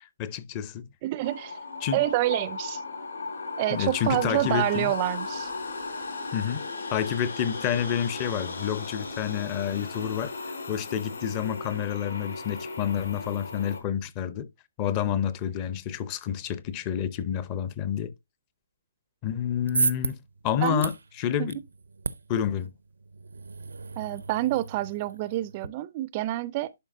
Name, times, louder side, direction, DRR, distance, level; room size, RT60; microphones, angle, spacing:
voice 1, 0.0-0.9 1.8-2.0 3.7-4.9 6.3-6.6 6.9-10.3 10.7-14.5 14.8-18.1 19.2-20.9 21.2-21.6 22.3-22.7, left 9 dB, 25° left, 0.6 m, -29 dB
voice 2, 1.0-1.6 1.9-2.8 3.6-5.5 20.6-20.8 21.4-21.5 24.0-26.7, right 16 dB, 30° right, 0.4 m, -27 dB
sound 1, 1.2-13.8, left 3 dB, 80° left, 3.7 m, -36 dB
sound 2, 19.3-25.7, right 4 dB, 85° right, 0.6 m, -34 dB
11.5 x 4.7 x 2.5 m
hypercardioid pair, 155°, 0 cm